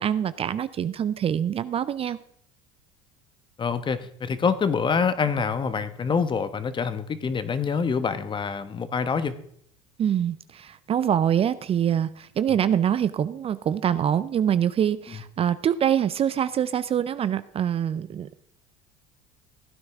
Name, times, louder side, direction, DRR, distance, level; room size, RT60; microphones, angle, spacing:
voice 1, 0.0-2.2 10.0-18.4, right 9 dB, 35° right, 15 dB, 0.5 m, -25 dB
voice 2, 3.6-9.3, left 5 dB, 30° left, 12 dB, 1.1 m, -26 dB
16.0 x 9.5 x 3.6 m, 0.66 s
supercardioid pair, 90°, 17 cm